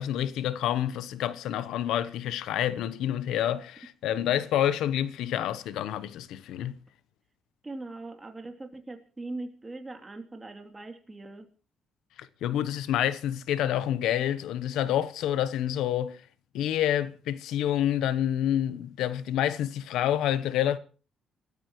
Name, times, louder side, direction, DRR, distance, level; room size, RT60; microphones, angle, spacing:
voice 1, 0.0-6.8 12.2-16.2 16.5-20.8, left 11 dB, 85° left, 0.9 m, -28 dB
voice 2, 7.6-11.5, right 2 dB, 20° right, 2.9 m, -40 dB
27.0 x 13.5 x 3.1 m
cardioid pair, 90°, 0 cm